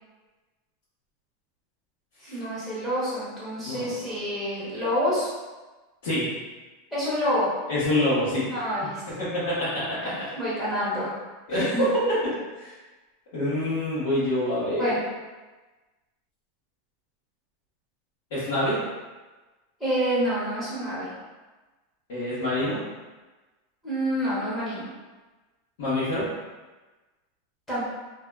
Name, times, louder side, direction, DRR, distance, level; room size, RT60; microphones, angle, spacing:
voice 1, 2.2-5.3 6.9-7.5 8.5-9.0 10.0-11.1 11.5-11.8 14.8-15.0 19.8-21.1 23.8-24.9 27.7-27.9, equal, 10° left, -11 dB, 0.7 m, -28 dB
voice 2, 7.7-8.5 9.2-10.1 11.5-12.0 12.6-12.7 13.3-14.9 18.3-18.8 22.1-22.8 25.8-26.3, left 1 dB, 75° left, -13 dB, 1.1 m, -26 dB
2.6 x 2.3 x 2.2 m, 1.2 s
supercardioid pair, 165°, 0 cm